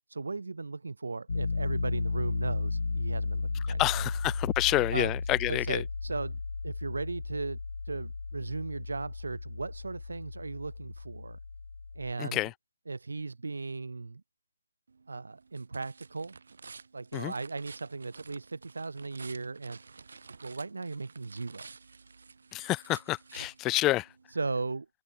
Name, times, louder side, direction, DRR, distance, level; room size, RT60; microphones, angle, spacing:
voice 1, 0.1-4.0 4.9-5.1 5.5-7.6 7.8-11.4 11.9-12.4 12.9-14.2 15.1-16.4 16.9-20.1 20.4-21.7 23.6-23.7 24.3-24.9, right 3 dB, 90° right, 1.2 m, -37 dB
Piano, 1.3-12.1, left 4 dB, 70° left, 0.9 m, -34 dB
voice 2, 3.8-5.8 12.2-12.5 17.1-17.3 22.5-24.1, left 17 dB, 10° left, 0.5 m, -28 dB
sound 1, 14.9-24.3, right 4 dB, 60° right, 1.5 m, -52 dB
hypercardioid pair, 175°, 0 cm